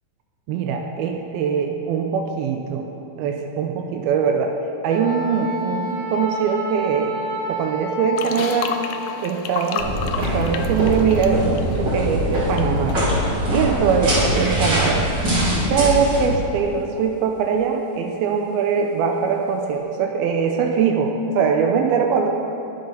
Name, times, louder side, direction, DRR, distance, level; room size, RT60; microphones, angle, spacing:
voice 1, 0.5-2.9 3.2-4.5 4.8-7.1 7.5-8.7 9.2-13.0 13.5-15.0 15.5-22.3, right 6 dB, 85° right, 3 dB, 2.6 m, -22 dB
Wind instrument woodwind instrument, 4.9-9.2, equal, 65° right, 2.5 m, -29 dB
sound 1, 8.2-12.6 12.9-13.1, left 7 dB, 75° left, 2.1 m, -31 dB
sound 2, 9.8-16.2, equal, 30° right, 3.3 m, -22 dB
22.0 x 7.9 x 5.7 m, 2.7 s
omnidirectional pair, 4.5 m